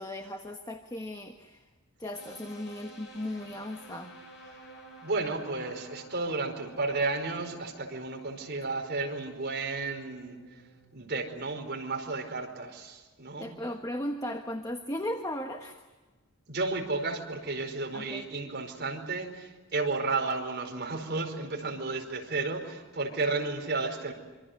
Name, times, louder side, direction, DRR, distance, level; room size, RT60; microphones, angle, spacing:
voice 1, 0.0-1.6 2.0-4.1 13.4-15.8 17.9-18.3, left 1 dB, 15° left, 5 dB, 1.3 m, -36 dB
sound 1, 2.1-12.0, right 1 dB, 55° left, 7.9 m, -52 dB
voice 2, 5.0-10.4 10.9-13.6 16.5-24.1, right 3 dB, 45° right, 2 dB, 4.8 m, -32 dB
26.5 x 25.5 x 8.1 m, 1.3 s
head